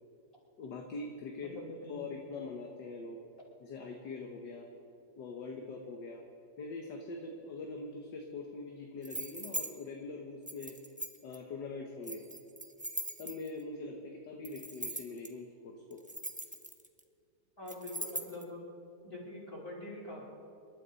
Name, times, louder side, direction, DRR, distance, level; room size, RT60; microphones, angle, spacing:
voice 1, 0.6-1.6 1.9-3.2 3.6-4.7 5.2-6.2 6.6-10.8 11.2-12.2 13.2-16.0, left 3 dB, 75° left, 2 dB, 1.8 m, -43 dB
voice 2, 1.4-2.0 17.6-18.6 19.0-20.2, left 1 dB, 30° left, -6 dB, 5.1 m, -44 dB
sound 1, 9.0-9.7 10.5-11.4 12.0-13.6 14.4-15.3 15.9-17.0 17.7-18.4, right 1 dB, 5° right, 0.6 m, -40 dB
28.0 x 12.5 x 4.1 m, 2.6 s
omnidirectional pair, 1.9 m